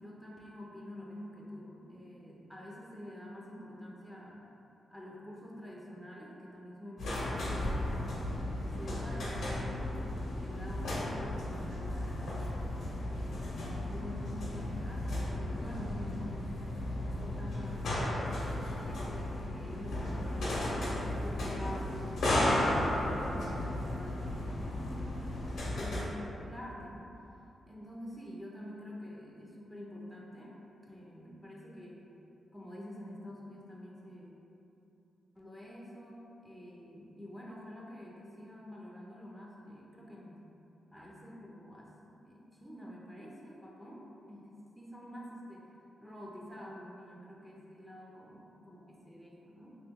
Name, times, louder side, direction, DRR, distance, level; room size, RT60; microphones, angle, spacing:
voice 1, 0.0-4.4 4.9-8.2 8.6-20.7 21.0-27.2 27.7-32.0 32.5-34.3 35.4-40.4 40.9-44.5 44.8-45.7 46.0-49.8, left 1 dB, ahead, -4 dB, 0.5 m, -48 dB
sound 1, 7.0-26.0, left 1 dB, 75° left, 0.8 m, -34 dB
3.0 x 2.9 x 3.5 m, 2.9 s
cardioid pair, 85°, 0 cm